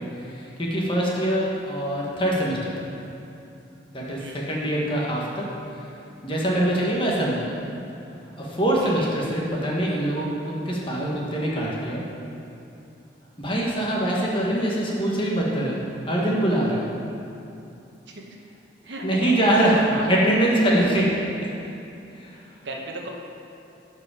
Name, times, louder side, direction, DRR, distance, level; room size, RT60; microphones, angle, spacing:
voice 1, 0.0-2.9 3.9-5.5 5.7-5.9 6.2-7.5 8.4-12.0 13.4-15.7 16.0-16.8 19.0-21.3 22.1-22.5, right 1 dB, 25° left, -4 dB, 1.3 m, -24 dB
voice 2, 18.8-20.0 20.8-21.1 22.6-23.1, right 2 dB, 65° right, 0 dB, 1.0 m, -33 dB
11.5 x 5.0 x 5.0 m, 2.8 s
head